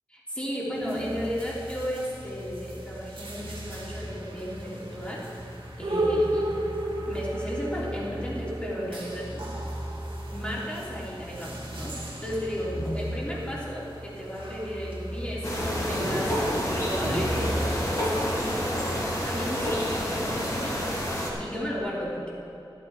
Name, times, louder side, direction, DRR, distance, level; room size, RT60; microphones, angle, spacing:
voice 1, 0.3-5.2 5.8-6.5 7.0-9.6 10.3-18.6 19.2-20.8 21.4-22.3, equal, 15° left, -6 dB, 3.2 m, -34 dB
sound 1, 0.7-17.6, right 1 dB, 80° right, 2.2 m, -34 dB
sound 2, 15.4-21.3, equal, 40° left, 2.4 m, -29 dB
13.5 x 12.0 x 4.3 m, 2.9 s
wide cardioid pair, 80°, 9 cm